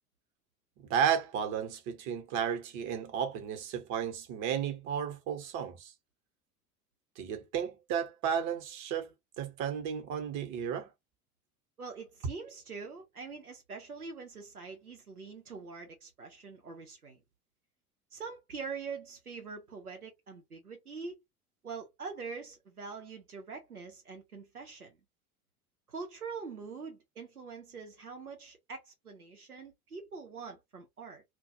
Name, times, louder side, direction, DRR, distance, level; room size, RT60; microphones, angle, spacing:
voice 1, 0.8-5.9 7.2-9.1 9.4-10.9, right 8 dB, 40° right, 0.9 m, -33 dB
voice 2, 11.8-17.2 18.1-21.2 21.6-25.0 25.9-31.2, right 5 dB, 90° right, 0.7 m, -44 dB
2.3 x 2.2 x 2.6 m
figure-of-eight pair, 70°, 43 cm